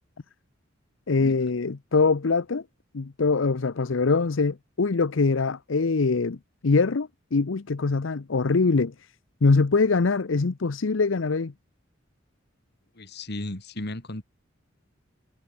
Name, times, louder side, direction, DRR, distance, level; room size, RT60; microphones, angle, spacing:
voice 1, 1.1-2.6 2.9-6.4 6.6-8.9 9.4-11.5, left 4 dB, 70° left, 0.7 m, -23 dB
voice 2, 12.9-14.2, left 1 dB, 55° left, 3.1 m, -35 dB
head